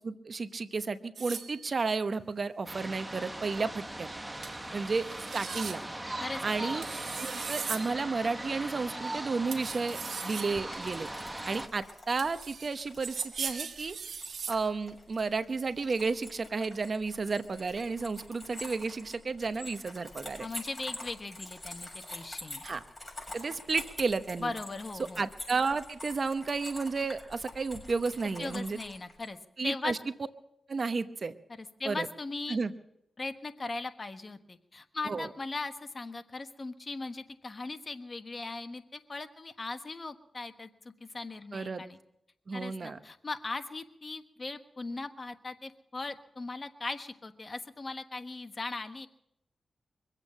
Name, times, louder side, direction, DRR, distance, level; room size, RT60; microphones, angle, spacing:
voice 1, 0.0-4.1 4.7-5.1 5.3-5.8 6.4-6.9 7.2-11.1 11.5-14.0 14.5-20.5 22.6-22.8 23.3-24.5 25.2-28.8 29.6-30.0 30.7-31.3 31.8-32.1 32.5-32.7 35.1-35.3 41.5-41.8 42.5-43.0, right 4 dB, 55° right, 11 dB, 0.9 m, -32 dB
sound 1, 1.2-1.9 4.4-4.6 4.9-5.8 6.8-7.9 9.5-11.0 12.2-14.6, right 6 dB, 80° right, 1.4 m, -39 dB
sound 2, 2.7-11.7, right 1 dB, 15° right, 1.2 m, -39 dB
voice 2, 6.2-6.7 20.4-22.6 24.4-25.3 28.4-29.4 29.6-29.9 31.5-32.6 33.2-42.0 42.5-49.1, left 3 dB, 40° left, 8 dB, 1.3 m, -39 dB
sound 3, 10.6-29.3, left 1 dB, 20° left, 7.2 m, -47 dB
23.5 x 8.3 x 7.4 m, 0.79 s
cardioid pair, 60°, 0 cm